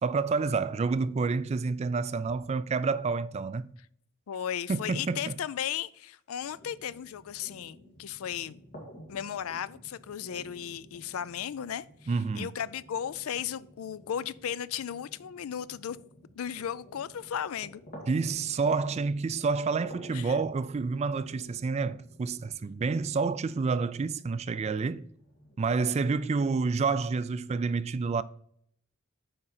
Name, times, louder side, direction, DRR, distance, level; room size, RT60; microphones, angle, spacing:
voice 1, 0.0-3.7 4.7-5.4 12.1-12.5 18.1-25.1 25.6-28.2, right 4 dB, 30° right, 0.3 m, -29 dB
voice 2, 4.3-8.6 9.1-16.0 16.4-17.8 20.1-20.4, left 9 dB, 85° left, 0.4 m, -35 dB
sound 1, 6.4-25.6, equal, 45° left, 2.4 m, -52 dB
8.5 x 5.0 x 4.2 m
head